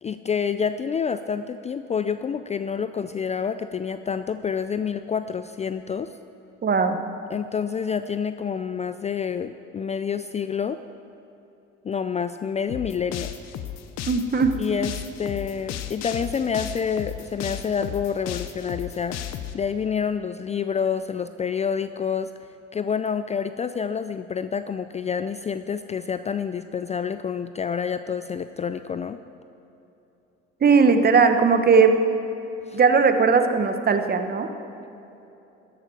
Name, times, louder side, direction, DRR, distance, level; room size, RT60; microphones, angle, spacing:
voice 1, 0.0-6.1 7.3-10.8 11.8-13.3 14.6-14.9 15.2-22.3 22.7-29.2 32.7-32.8, left 6 dB, 25° left, 11 dB, 0.4 m, -28 dB
voice 2, 6.6-7.0 14.1-14.6 30.6-32.0 32.7-34.5, right 5 dB, 35° right, 7 dB, 1.2 m, -18 dB
sound 1, 12.7-19.5, left 10 dB, 60° left, 0.9 m, -34 dB
14.0 x 12.0 x 4.7 m, 2.9 s
supercardioid pair, 80°, 29 cm